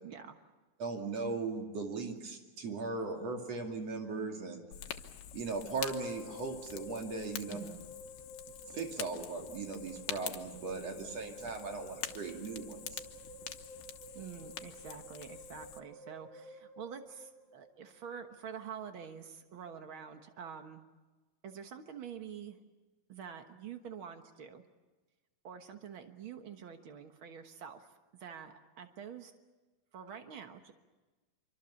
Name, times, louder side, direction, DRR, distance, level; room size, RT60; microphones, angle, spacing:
voice 1, 0.0-0.4 7.5-7.8 14.1-20.8 21.4-22.6 23.1-24.6 25.4-27.9 28.2-29.3 29.9-30.7, right 7 dB, 75° right, 6 dB, 1.1 m, -47 dB
voice 2, 0.8-4.6 5.3-7.6 8.7-13.0, right 4 dB, 45° right, 3 dB, 3.4 m, -38 dB
Fire, 4.7-15.8, left 11 dB, 85° left, 3.2 m, -46 dB
sound 1, 5.8-18.1, left 2 dB, 15° right, 7.6 m, -51 dB
26.5 x 24.5 x 7.1 m, 1.2 s
omnidirectional pair, 4.5 m